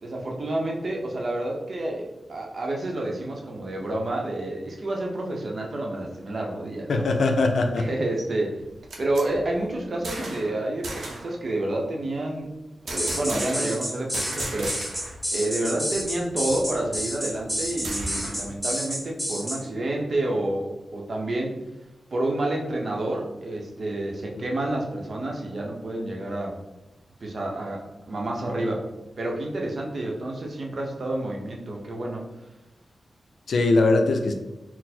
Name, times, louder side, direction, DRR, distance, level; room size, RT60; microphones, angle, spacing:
voice 1, 0.0-7.1 7.8-8.6 9.0-12.5 12.9-14.8 15.3-21.6 22.1-26.6 27.2-28.8 29.2-32.3, right 1 dB, 50° right, 0 dB, 0.7 m, -29 dB
voice 2, 6.9-7.8 33.5-34.3, left 3 dB, 70° left, 5 dB, 0.5 m, -21 dB
sound 1, 8.6-10.5 10.8-11.3 12.9-13.8 14.1-15.2 15.5-15.6 15.9-18.5, right 2 dB, 85° right, 0.8 m, -36 dB
sound 2, 13.0-19.6, equal, 5° right, 1.1 m, -30 dB
4.3 x 2.0 x 4.2 m, 0.99 s
wide cardioid pair, 135°, 0 cm